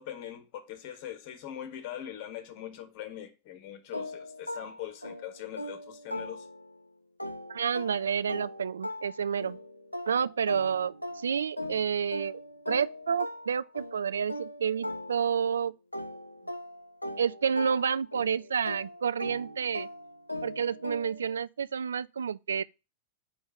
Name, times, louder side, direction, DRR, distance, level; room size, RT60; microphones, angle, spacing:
voice 1, 0.0-6.5, left 11 dB, 45° left, 1.4 m, -42 dB
sound 1, 3.9-6.8 7.2-15.5 15.9-21.4, left 1 dB, 85° left, 0.6 m, -40 dB
voice 2, 7.5-9.6 10.1-12.4 12.7-15.7 17.2-19.9 20.4-22.6, right 7 dB, 70° right, 0.3 m, -29 dB
4.6 x 4.5 x 5.8 m
figure-of-eight pair, 90°, 0 cm